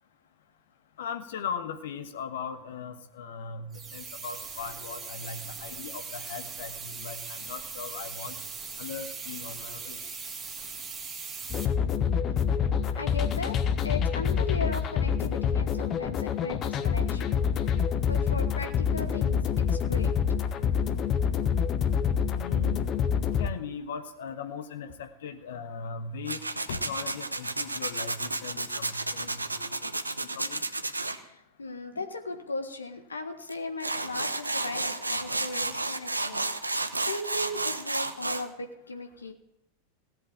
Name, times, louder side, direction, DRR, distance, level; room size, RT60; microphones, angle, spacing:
voice 1, 1.0-8.3 8.8-10.0 22.3-22.8 23.4-29.9 30.2-30.6 31.9-32.0, left 6 dB, 60° left, 8 dB, 1.4 m, -39 dB
sound 1, 3.7-11.7, right 5 dB, 15° right, 1.8 m, -40 dB
sound 2, 11.5-23.5, left 7 dB, 30° left, 1.1 m, -27 dB
voice 2, 12.9-13.6 13.8-20.1 31.1-39.3, left 3 dB, 75° left, 6 dB, 1.6 m, -37 dB
Tools, 26.3-31.2 33.5-33.6 33.8-38.4, right 2 dB, 80° right, 1.0 m, -31 dB
17.0 x 8.1 x 8.9 m, 0.87 s
figure-of-eight pair, 90°, 0 cm